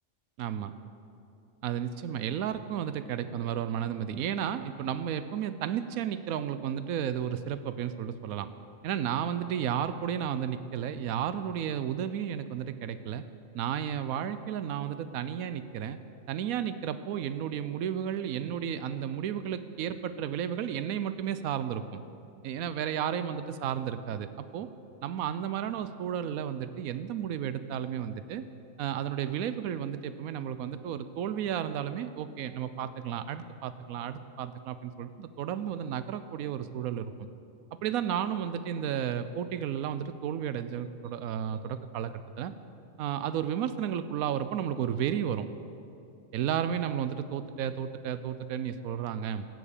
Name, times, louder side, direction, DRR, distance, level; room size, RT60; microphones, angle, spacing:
voice 1, 0.4-0.7 1.6-8.5 8.8-13.2 13.5-16.0 16.3-22.0 22.4-24.7 25.0-28.4 28.8-37.3 37.8-42.5 43.0-45.5 46.3-49.5, right 9 dB, 85° right, 12 dB, 1.0 m, -33 dB
16.5 x 8.0 x 6.5 m, 2.6 s
omnidirectional pair, 1.4 m